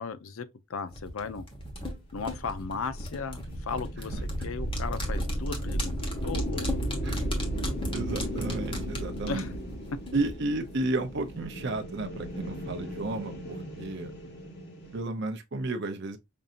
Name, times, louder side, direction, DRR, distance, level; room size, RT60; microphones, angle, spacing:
voice 1, 0.0-1.5 2.1-6.0 6.2-6.7 9.3-9.5, left 4 dB, 75° left, 0.5 m, -36 dB
sound 1, 0.9-10.3 10.6-10.7, left 1 dB, 25° left, 1.0 m, -38 dB
sound 2, 1.6-15.0, right 1 dB, 45° left, 1.1 m, -35 dB
voice 2, 7.9-9.5 10.1-14.1 14.9-16.2, right 2 dB, 50° right, 0.5 m, -32 dB
5.3 x 2.7 x 2.4 m
head